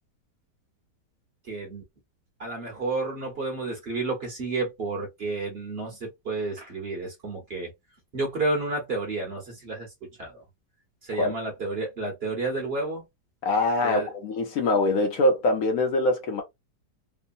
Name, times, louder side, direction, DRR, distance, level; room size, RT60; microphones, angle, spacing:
voice 1, 1.5-1.8 2.4-7.7 8.1-9.9 10.2-10.4 11.0-13.0 13.8-14.1, right 3 dB, 40° right, 1.1 m, -31 dB
voice 2, 13.4-16.4, left 2 dB, 65° left, 1.1 m, -23 dB
3.2 x 2.0 x 2.6 m
omnidirectional pair, 1.8 m